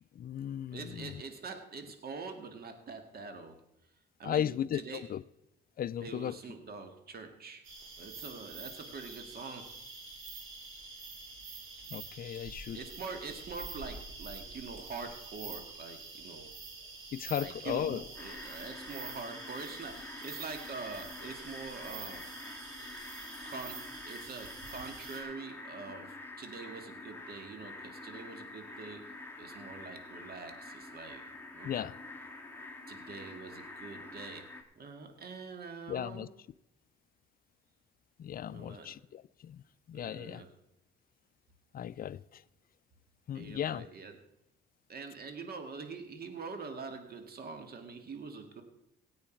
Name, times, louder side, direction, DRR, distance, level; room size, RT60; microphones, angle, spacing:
voice 1, 0.2-1.2 4.2-5.2 5.8-6.4 11.9-12.8 17.1-18.0 31.6-31.9 35.9-36.3 38.2-40.4 41.7-42.4 43.3-43.9, left 10 dB, 50° left, 0.4 m, -36 dB
voice 2, 0.7-3.6 4.2-5.0 6.0-7.6 8.0-9.7 12.7-16.5 17.4-22.2 23.4-31.2 31.5-31.9 32.9-34.5 34.8-36.3 38.5-38.9 39.9-40.5 43.3-44.1 44.9-48.6, right 4 dB, 50° right, 2.1 m, -44 dB
sound 1, 7.6-25.2, right 4 dB, 85° right, 2.6 m, -47 dB
sound 2, 18.2-34.6, left 2 dB, 10° left, 1.7 m, -47 dB
17.0 x 8.6 x 4.6 m
cardioid pair, 90°, 20 cm